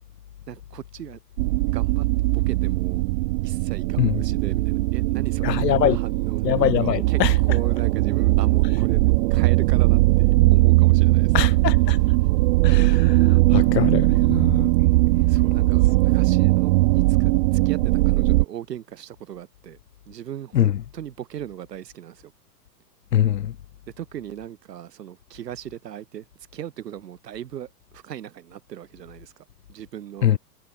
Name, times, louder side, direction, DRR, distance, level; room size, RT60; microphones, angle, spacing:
voice 1, 0.5-1.2 1.7-2.1 2.3-3.0 3.4-7.2 7.5-11.4 15.3-19.8 20.1-22.3 24.0-26.3 26.5-30.3, right 10 dB, 80° right, 5.7 m, -38 dB
sound 1, 1.4-18.5, right 21 dB, 55° right, 1.5 m, -19 dB
voice 2, 5.4-6.0 6.4-7.4 11.3-12.0 12.6-14.7 20.5-20.7 23.1-23.5 30.2-30.4, left 11 dB, 90° left, 1.3 m, -23 dB
hypercardioid pair, 120°, 48 cm